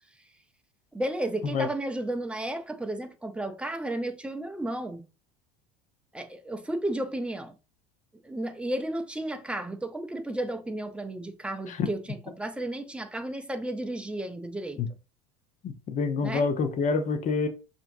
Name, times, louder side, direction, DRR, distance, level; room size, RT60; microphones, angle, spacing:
voice 1, 0.9-5.0 6.1-7.5 8.2-14.8 16.2-16.5, right 1 dB, 5° right, 0.5 m, -33 dB
voice 2, 15.6-17.5, left 5 dB, 40° left, 0.7 m, -27 dB
5.5 x 2.7 x 2.6 m
supercardioid pair, 100°, 20 cm